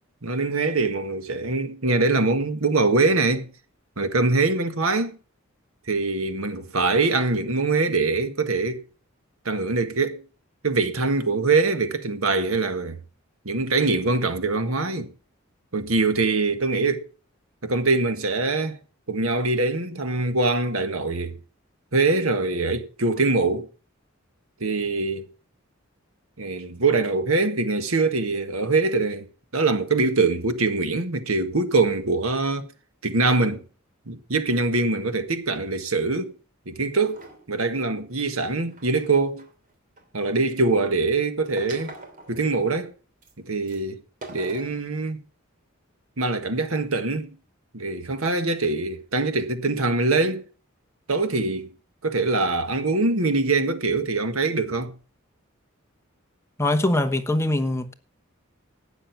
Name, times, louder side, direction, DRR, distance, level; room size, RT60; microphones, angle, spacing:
voice 1, 0.2-3.5 4.0-5.1 5.9-8.8 9.4-10.2 10.6-13.0 13.4-15.1 15.7-17.1 17.6-18.8 19.1-21.4 21.9-23.7 24.6-25.2 26.4-29.3 29.5-32.7 33.0-33.6 34.1-36.3 36.7-39.5 40.1-41.9 42.3-42.9 43.4-44.0 44.3-45.2 46.2-47.3 47.7-50.4 51.1-51.7 52.0-54.9, right 3 dB, 90° right, 1.6 m, -23 dB
sound 1, 37.1-37.4 38.1-40.0 41.6-42.7 43.2-43.3 43.7-43.8 44.2-44.8, right 2 dB, 40° right, 2.9 m, -43 dB
voice 2, 56.6-57.9, left 1 dB, 15° left, 1.1 m, -22 dB
12.5 x 8.9 x 5.9 m
head